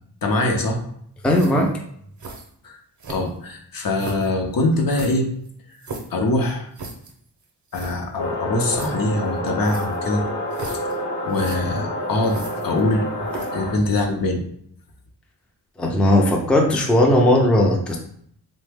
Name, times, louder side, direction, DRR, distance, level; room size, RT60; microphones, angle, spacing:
voice 1, 0.2-0.8 2.6-2.8 3.1-5.3 6.1-6.7 7.7-10.2 11.2-13.1 13.5-14.4, left 2 dB, 60° left, 2 dB, 0.6 m, -23 dB
voice 2, 1.2-1.8 15.8-18.0, left 1 dB, 5° left, 0 dB, 0.4 m, -17 dB
sound 1, 1.3-1.7 2.2-2.5 3.0-3.5 4.0-4.3 4.9-6.2 6.7-7.1 7.4-7.5 7.7-8.0 8.7-8.9 9.6-10.0 10.5-11.0 11.3-11.6 12.2-12.9 13.3-13.6, right 3 dB, 50° right, 0.6 m, -36 dB
sound 2, 8.2-13.7, left 1 dB, 90° left, 1.0 m, -28 dB
3.2 x 2.1 x 3.4 m, 0.66 s
wide cardioid pair, 105°, 40 cm